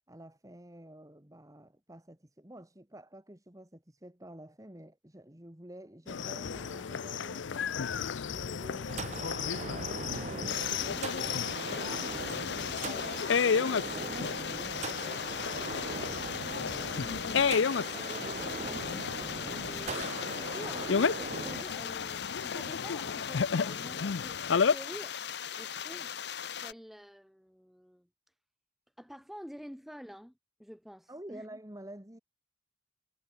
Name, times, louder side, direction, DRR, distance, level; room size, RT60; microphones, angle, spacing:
voice 1, 0.1-8.0 8.3-9.3 9.6-12.1 12.7-13.1 13.4-17.9 19.2-19.4 31.1-32.2, right 1 dB, 20° right, 2.2 m, -50 dB
sound 1, 6.1-24.7, left 6 dB, 90° left, 0.6 m, -33 dB
sound 2, 8.9-21.6, right 4 dB, 40° right, 0.7 m, -40 dB
sound 3, 10.5-26.7, left 8 dB, 60° left, 1.0 m, -39 dB
voice 2, 12.9-13.2 17.9-25.2 25.5-26.1 26.6-28.1 29.0-30.3 30.6-31.5, equal, ahead, 3.1 m, -48 dB
head